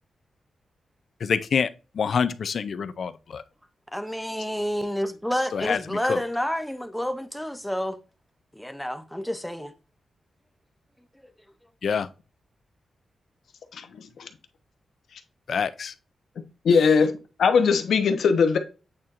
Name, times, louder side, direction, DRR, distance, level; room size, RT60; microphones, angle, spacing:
voice 1, 1.2-3.4 5.5-6.2 11.8-12.1 15.5-15.9 16.7-16.9, left 6 dB, 55° left, 0.4 m, -27 dB
voice 2, 3.9-8.0 8.5-9.7, equal, ahead, 0.6 m, -29 dB
voice 3, 16.6-18.6, left 5 dB, 80° left, 0.9 m, -20 dB
8.7 x 4.3 x 2.5 m
wide cardioid pair, 165°, 0 cm